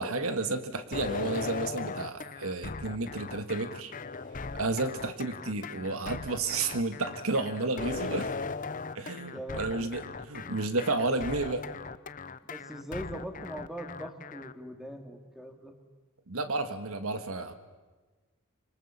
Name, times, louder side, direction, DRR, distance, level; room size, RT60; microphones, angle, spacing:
voice 1, 0.0-3.9 4.6-8.3 8.9-11.6 16.3-17.5, right 3 dB, 70° right, 9 dB, 1.6 m, -32 dB
sound 1, 0.9-14.5, left 4 dB, 35° left, 0.8 m, -38 dB
voice 2, 9.3-9.9 11.1-11.2 12.4-15.7, equal, ahead, 4 dB, 2.5 m, -41 dB
26.5 x 24.0 x 7.3 m, 1.3 s
head